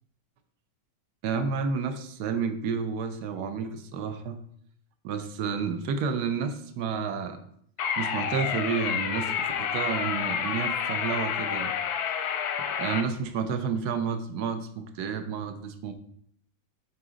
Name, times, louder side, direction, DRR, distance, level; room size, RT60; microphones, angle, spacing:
voice 1, 1.2-4.4 5.0-7.5 8.0-11.7 12.8-15.9, right 6 dB, 65° right, 8 dB, 1.1 m, -30 dB
sound 1, 7.8-13.0, left 8 dB, 65° left, 1.0 m, -29 dB
9.0 x 4.2 x 3.8 m, 0.67 s
omnidirectional pair, 2.1 m